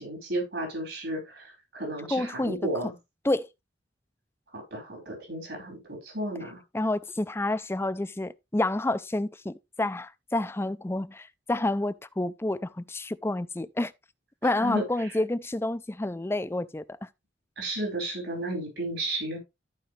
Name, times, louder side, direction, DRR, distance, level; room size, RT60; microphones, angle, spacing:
voice 1, 0.0-2.9 4.5-6.6 14.6-14.8 17.6-19.4, right 1 dB, 75° right, 5.0 m, -33 dB
voice 2, 2.1-2.9 3.2-3.5 6.7-13.9 14.4-17.1, left 2 dB, 15° left, 0.4 m, -29 dB
14.0 x 5.0 x 3.2 m
head